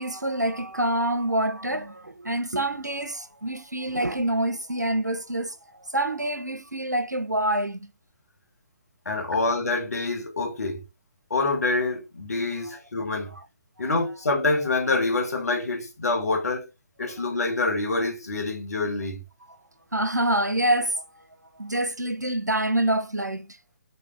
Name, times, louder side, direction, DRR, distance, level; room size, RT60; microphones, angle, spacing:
voice 1, 0.0-5.6 5.9-7.9 19.4-19.6 19.9-21.0 21.6-23.6, right 1 dB, 90° right, 0.7 m, -26 dB
voice 2, 9.0-10.8 11.3-13.3 13.8-16.7 17.0-19.2, left 3 dB, 65° left, 1.4 m, -26 dB
4.3 x 2.7 x 3.3 m
figure-of-eight pair, 135°, 9 cm